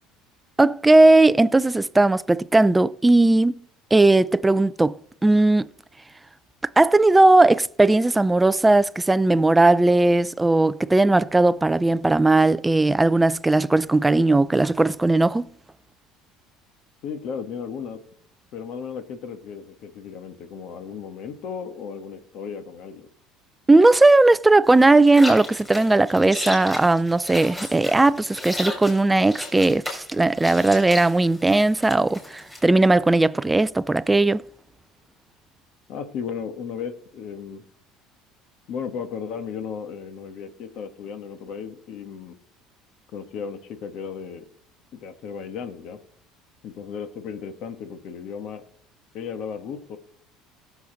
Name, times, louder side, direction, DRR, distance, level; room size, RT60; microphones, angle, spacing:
voice 1, 0.6-3.6 3.9-5.0 5.2-5.7 6.8-15.5 23.7-34.4, right 2 dB, 10° right, 0.4 m, -17 dB
voice 2, 17.0-18.0 18.5-23.1 35.9-37.6 38.7-42.4 43.1-44.4 44.9-46.0 46.6-48.6 49.1-50.0, left 6 dB, 55° left, 1.3 m, -35 dB
sound 1, 24.7-32.6, left 1 dB, 5° left, 4.2 m, -35 dB
17.5 x 7.2 x 3.9 m
cardioid pair, 145°, 0 cm